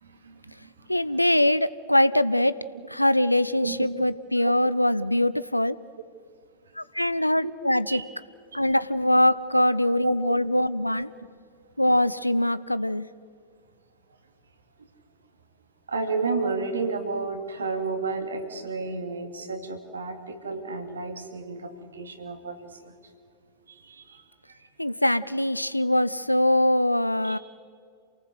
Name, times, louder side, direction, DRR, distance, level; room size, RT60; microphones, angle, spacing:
voice 1, 0.0-0.7 3.6-3.8 7.4-7.5 7.9-8.1 8.5-8.6 10.0-10.1 15.9-22.9 23.7-24.2 27.2-27.4, right 4 dB, 70° right, 6 dB, 2.5 m, -31 dB
voice 2, 0.9-2.6 2.9-5.8 6.8-8.0 8.5-11.1 11.8-13.1 24.8-27.4, left 1 dB, 90° left, 17 dB, 0.6 m, -23 dB
28.0 x 18.5 x 8.0 m, 2.3 s
figure-of-eight pair, 90°, 0 cm